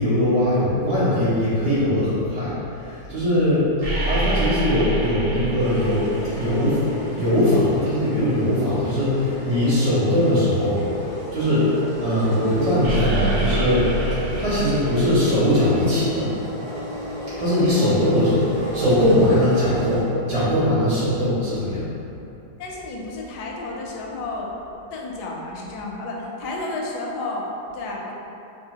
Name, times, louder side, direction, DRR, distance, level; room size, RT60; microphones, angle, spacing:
voice 1, 0.0-2.5 2.8-3.6 4.0-6.8 7.1-10.8 11.3-11.7 12.0-16.3 17.4-21.8, left 1 dB, 70° right, -13 dB, 2.0 m, -20 dB
sound 1, 3.8-7.0 12.8-16.1, right 1 dB, 50° right, 1.4 m, -27 dB
sound 2, 5.6-20.0, right 1 dB, 85° right, 1.5 m, -34 dB
voice 2, 17.8-18.1 22.6-24.5 24.9-28.1, left 2 dB, 80° left, -1 dB, 1.2 m, -32 dB
4.7 x 2.5 x 2.8 m, 2.8 s
omnidirectional pair, 1.7 m